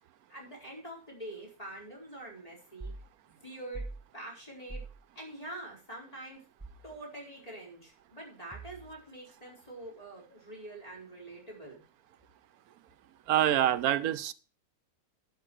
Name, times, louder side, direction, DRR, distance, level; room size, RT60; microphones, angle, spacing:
voice 1, 0.3-2.9 3.3-3.9 4.1-4.8 5.1-6.4 6.8-11.8, right 1 dB, 25° left, 4.7 m, -45 dB
sound 1, 2.8-3.1 3.7-4.0 4.7-5.0 6.6-6.9 8.5-9.0, right 3 dB, 5° right, 1.3 m, -42 dB
voice 2, 13.3-14.3, right 11 dB, 80° right, 1.2 m, -26 dB
11.0 x 6.7 x 6.3 m
omnidirectional pair, 1.6 m